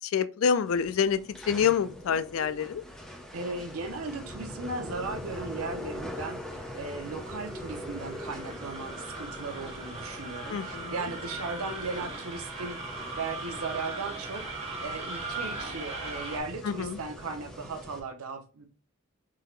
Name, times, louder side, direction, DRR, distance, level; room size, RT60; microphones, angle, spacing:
voice 1, 0.0-1.2 1.5-2.8 10.5-10.9 16.6-17.0, left 7 dB, 65° left, 0.4 m, -27 dB
sound 1, 0.7-18.0, left 1 dB, 5° left, 0.7 m, -42 dB
voice 2, 3.3-12.8 13.2-18.7, right 3 dB, 85° right, 0.7 m, -37 dB
sound 2, 6.4-16.4, right 3 dB, 30° right, 0.9 m, -40 dB
3.7 x 2.8 x 3.2 m
head